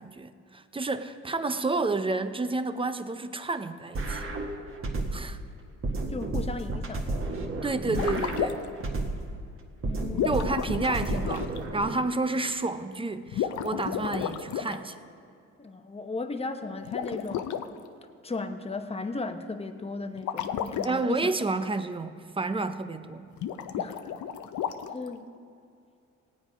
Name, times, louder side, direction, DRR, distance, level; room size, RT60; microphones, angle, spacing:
voice 1, 0.0-4.3 5.1-5.4 7.6-8.6 10.2-15.0 20.8-23.3, right 3 dB, 15° right, 0.7 m, -30 dB
sound 1, 3.9-5.4 5.8-9.4 9.8-11.9, right 2 dB, 45° right, 1.6 m, -32 dB
voice 2, 6.1-7.4 9.8-10.4 15.6-17.5 18.2-21.2 21.6-21.7 23.7-24.1 24.9-25.2, left 3 dB, 20° left, 1.0 m, -36 dB
sound 2, 7.8-8.8 10.1-11.6 13.3-14.8 16.8-17.6 20.2-20.9 23.3-25.1, left 9 dB, 75° left, 0.8 m, -32 dB
18.0 x 9.0 x 5.1 m
cardioid pair, 90°, 30 cm